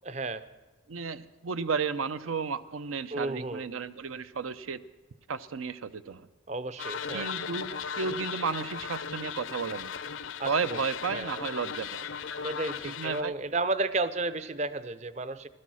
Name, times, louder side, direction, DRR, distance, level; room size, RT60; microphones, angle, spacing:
voice 1, 0.0-0.5 3.1-3.7 6.5-7.3 10.4-10.8 11.1-11.4 12.4-15.5, right 2 dB, 35° right, 14 dB, 0.5 m, -32 dB
voice 2, 0.9-4.8 5.3-6.3 7.1-9.9 10.5-12.1 12.8-13.3, right 5 dB, 90° right, 13 dB, 0.6 m, -33 dB
sound 1, 6.8-13.2, left 7 dB, 75° left, 0.6 m, -37 dB
15.5 x 12.5 x 6.2 m, 1.2 s
head